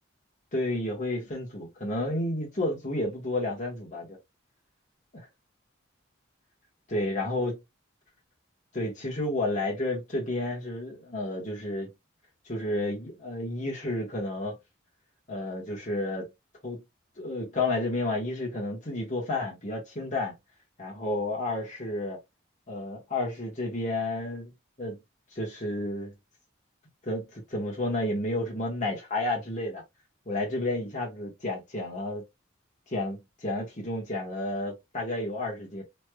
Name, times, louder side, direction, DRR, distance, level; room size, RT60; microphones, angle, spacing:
voice 1, 0.5-4.2 5.1-5.3 6.9-7.6 8.7-11.9 12.4-14.6 15.3-16.3 16.6-16.8 17.2-20.3 20.8-22.2 22.7-24.5 24.8-25.0 25.3-26.1 27.0-29.8 30.3-32.2 32.9-35.8, left 2 dB, 35° left, 1.3 m, -31 dB
3.2 x 3.1 x 2.2 m
head